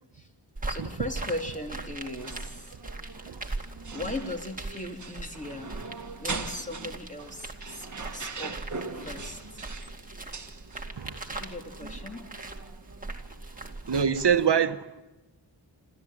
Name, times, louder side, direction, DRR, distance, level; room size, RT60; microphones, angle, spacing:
sound 1, 0.6-14.5, right 2 dB, 20° right, 2.2 m, -40 dB
voice 1, 0.7-2.8 3.9-5.7 6.2-9.8 11.3-12.3, left 1 dB, 15° left, 2.7 m, -38 dB
sound 2, 1.2-14.1, right 4 dB, 40° right, 1.5 m, -42 dB
voice 2, 11.0-11.4 13.9-15.0, right 7 dB, 60° right, 1.3 m, -25 dB
26.5 x 14.0 x 8.6 m
wide cardioid pair, 85°, 45 cm